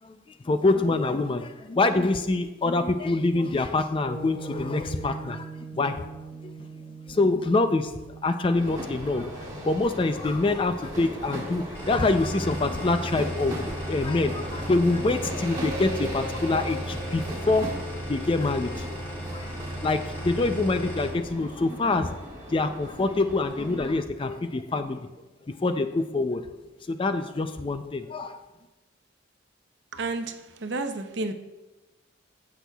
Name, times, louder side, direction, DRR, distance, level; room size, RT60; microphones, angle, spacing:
voice 1, 0.4-5.5 5.7-6.0 6.4-6.5 7.1-7.9 8.2-17.7 18.1-19.5 19.8-22.2 22.5-25.1 25.6-26.5 26.9-28.4, left 3 dB, 25° left, 9 dB, 0.4 m, -25 dB
sound 1, 4.0-13.7, right 4 dB, 50° left, 3.1 m, -43 dB
sound 2, 8.5-23.9, equal, 20° right, 1.5 m, -38 dB
sound 3, 11.7-21.1, right 1 dB, 10° left, 2.6 m, -35 dB
voice 2, 29.9-31.3, right 3 dB, 60° right, 7 dB, 0.7 m, -31 dB
16.0 x 6.1 x 2.3 m, 1.1 s
head